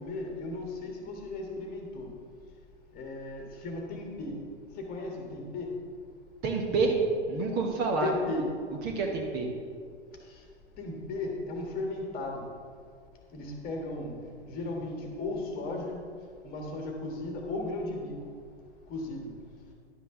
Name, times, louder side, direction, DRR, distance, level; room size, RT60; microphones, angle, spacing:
voice 1, 0.0-2.1 2.9-4.4 4.8-5.8 7.8-8.4 10.3-10.4 10.8-12.4 13.3-14.1 14.5-16.1 16.4-18.1 18.9-19.3, left 2 dB, 25° left, 1 dB, 1.6 m, -36 dB
voice 2, 6.4-7.0 7.3-8.1 8.8-9.5, right 3 dB, 30° right, 1 dB, 1.2 m, -28 dB
11.5 x 8.2 x 3.8 m, 2.2 s
figure-of-eight pair, 105°, 34 cm